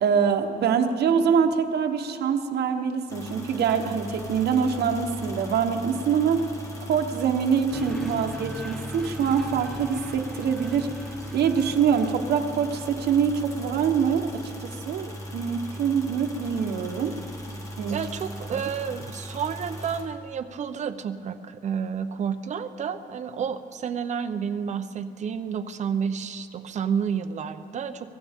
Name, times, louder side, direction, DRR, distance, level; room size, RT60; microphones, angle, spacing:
voice 1, 0.0-6.5 6.9-10.9 11.3-14.4 14.9-17.2 17.8-18.0, right 7 dB, 80° right, 5 dB, 1.1 m, -24 dB
sound 1, 3.1-20.0, equal, 20° left, 1.8 m, -39 dB
sound 2, 7.7-13.1, equal, 5° left, 0.8 m, -40 dB
voice 2, 17.9-28.1, right 7 dB, 45° right, 9 dB, 0.7 m, -30 dB
24.0 x 17.0 x 3.6 m, 2.6 s
wide cardioid pair, 170°, 17 cm